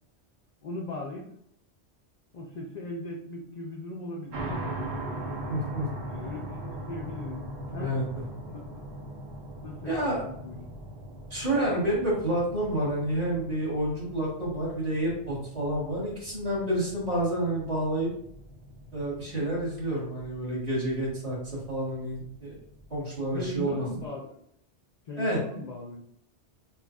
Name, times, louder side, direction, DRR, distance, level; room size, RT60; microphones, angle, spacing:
voice 1, 0.6-1.3 2.3-4.4 6.1-8.0 8.5-8.6 9.6-10.6 23.3-24.4 25.1-26.0, left 2 dB, 60° left, -1 dB, 0.4 m, -38 dB
sound 1, 4.3-24.0, right 1 dB, 70° right, 1.0 m, -41 dB
voice 2, 5.5-5.9 7.8-8.0 9.8-10.2 11.3-18.1 18.9-22.6 22.9-23.8 25.2-25.4, right 1 dB, 35° right, -7 dB, 1.5 m, -29 dB
4.1 x 2.3 x 2.3 m, 0.71 s
omnidirectional pair, 1.2 m